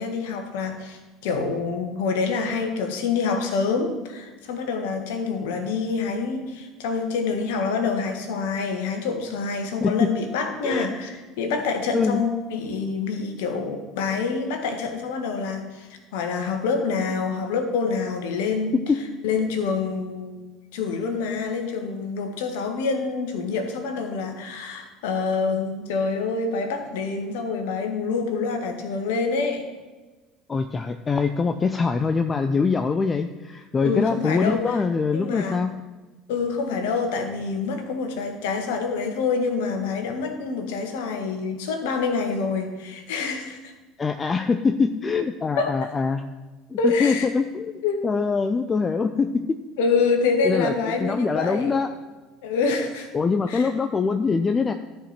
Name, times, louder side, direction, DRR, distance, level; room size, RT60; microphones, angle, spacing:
voice 1, 0.0-18.7 19.2-20.4 20.7-29.6 33.8-34.8 35.1-35.6 36.3-43.7 45.6-45.9 46.8-47.3 47.8-48.2 49.8-51.7 52.4-53.1 53.5-53.7, left 4 dB, 65° left, 5 dB, 1.5 m, -26 dB
voice 2, 30.5-35.7 44.0-46.2 46.7-47.7 48.0-49.6 50.4-50.7 51.0-51.9 53.1-54.7, left 4 dB, 25° left, 7 dB, 0.6 m, -23 dB
12.5 x 5.1 x 5.9 m, 1.2 s
figure-of-eight pair, 65°, 0 cm